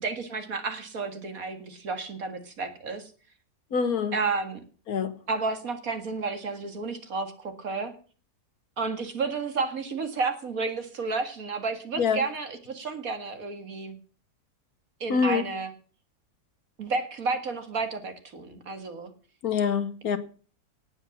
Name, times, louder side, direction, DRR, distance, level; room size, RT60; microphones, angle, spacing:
voice 1, 0.0-3.1 4.1-4.6 5.3-7.9 8.8-14.0 15.0-15.7 16.8-19.1, right 4 dB, 60° right, 2.3 m, -31 dB
voice 2, 3.7-4.1 4.9-5.1 12.0-12.2 15.1-15.4 19.4-20.2, left 6 dB, 70° left, 1.7 m, -25 dB
18.0 x 8.0 x 7.2 m
omnidirectional pair, 1.7 m